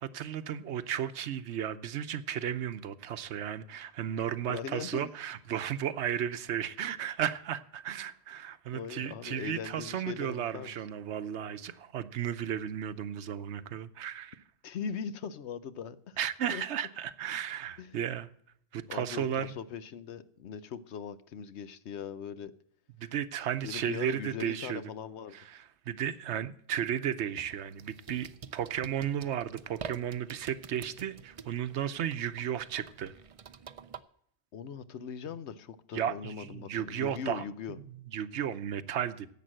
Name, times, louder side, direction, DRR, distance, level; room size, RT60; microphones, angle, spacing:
voice 1, 0.0-14.4 16.2-18.3 18.7-19.6 23.0-24.8 25.3-33.1 35.9-37.4 37.8-37.9 38.1-39.3, right 9 dB, 85° right, 1.0 m, -34 dB
voice 2, 4.5-5.1 8.7-10.7 14.6-16.2 16.5-16.6 17.8-18.0 18.9-22.5 23.6-25.4 34.5-37.8, left 7 dB, 80° left, 1.0 m, -40 dB
sound 1, 27.3-34.0, right 6 dB, 45° right, 0.4 m, -48 dB
11.0 x 8.0 x 7.6 m
omnidirectional pair, 1.1 m